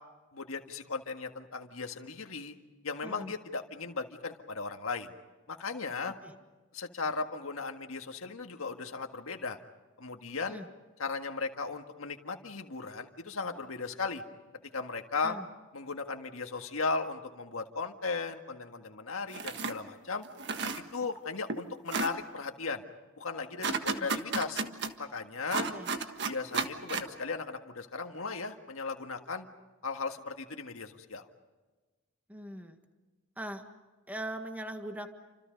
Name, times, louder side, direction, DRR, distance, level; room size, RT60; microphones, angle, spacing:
voice 1, 0.3-2.5 2.8-5.1 5.5-6.1 6.7-9.6 10.0-10.6 11.0-14.2 14.7-15.4 15.7-20.2 20.9-22.8 23.2-24.6 25.0-25.7 26.2-29.5 29.8-31.3, left 4 dB, 75° left, 5 dB, 1.7 m, -36 dB
sound 1, 19.3-19.8 20.2-21.2 21.5-21.6 21.9-22.1 23.6-24.9 25.5-27.1, right 4 dB, 55° right, 1.5 m, -32 dB
voice 2, 25.5-25.9 32.3-32.8 33.4-33.6 34.1-35.1, right 1 dB, 10° right, 6 dB, 1.7 m, -41 dB
29.5 x 26.0 x 5.3 m, 1.3 s
head